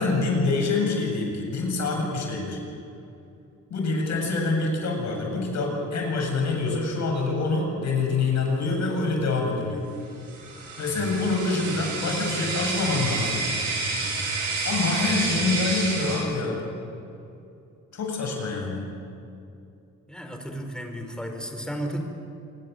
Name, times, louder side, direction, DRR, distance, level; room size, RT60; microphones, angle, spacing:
voice 1, 0.0-2.6 3.7-9.9 10.8-13.4 14.6-16.6 17.9-18.9, left 3 dB, 65° left, 1 dB, 7.9 m, -26 dB
sound 1, 10.3-16.2, right 3 dB, 80° right, 7.9 m, -29 dB
voice 2, 20.1-22.0, equal, 5° left, 4 dB, 5.1 m, -33 dB
27.5 x 21.0 x 8.2 m, 2.6 s
cardioid pair, 90°, 30 cm